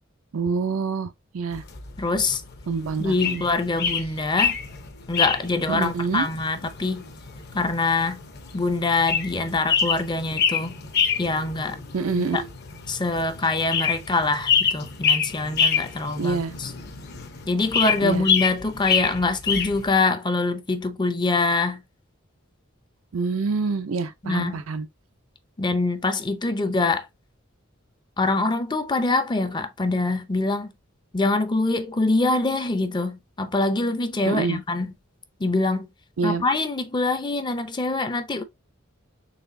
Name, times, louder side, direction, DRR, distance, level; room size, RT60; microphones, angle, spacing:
voice 1, 0.3-1.6 2.7-3.4 5.7-6.3 11.9-12.5 16.2-16.5 18.0-18.3 23.1-24.9 34.3-34.6 36.2-36.4, right 4 dB, 85° right, 0.5 m, -26 dB
sound 1, 1.5-19.9, left 6 dB, 55° left, 0.8 m, -27 dB
voice 2, 2.0-2.4 3.0-4.6 5.1-7.0 7.5-8.2 8.5-10.7 11.2-11.8 12.3-12.4 12.9-16.7 17.5-21.8 24.2-24.6 25.6-27.1 28.2-30.7 31.1-34.9 35.4-35.9 36.2-38.4, left 3 dB, 20° left, 0.5 m, -24 dB
4.1 x 3.4 x 2.6 m
head